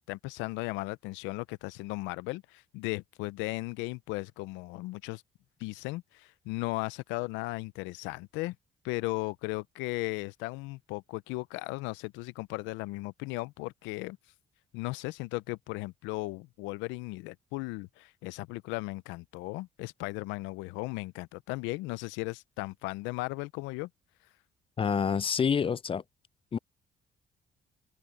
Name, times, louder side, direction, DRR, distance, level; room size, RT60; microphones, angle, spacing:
voice 1, 0.0-5.2 5.6-8.6 8.8-14.2 14.7-23.9, left 22 dB, 90° left, 0.6 m, -36 dB
voice 2, 24.8-26.0 26.5-26.6, left 7 dB, 30° left, 0.4 m, -27 dB
open air
supercardioid pair, 60°, 19 cm